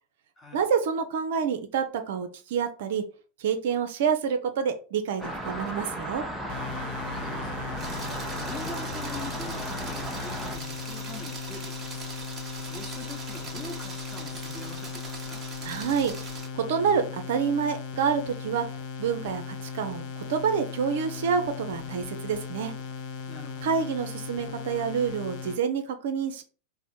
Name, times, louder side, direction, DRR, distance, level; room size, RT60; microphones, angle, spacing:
voice 1, 0.5-3.0 3.4-6.2 15.6-18.7 19.0-22.7 23.6-26.4, right 6 dB, 55° right, 8 dB, 0.5 m, -28 dB
sound 1, 5.2-10.6, right 1 dB, 5° right, 0.7 m, -35 dB
sound 2, 6.5-25.6, left 5 dB, 45° left, 0.6 m, -38 dB
voice 2, 7.0-7.7 8.3-12.1 12.6-15.4 23.3-23.8, left 2 dB, 15° left, 2 dB, 1.0 m, -44 dB
sound 3, 7.8-16.5, right 4 dB, 20° right, 1.0 m, -41 dB
4.3 x 2.1 x 4.2 m, 0.37 s
figure-of-eight pair, 90°, 0 cm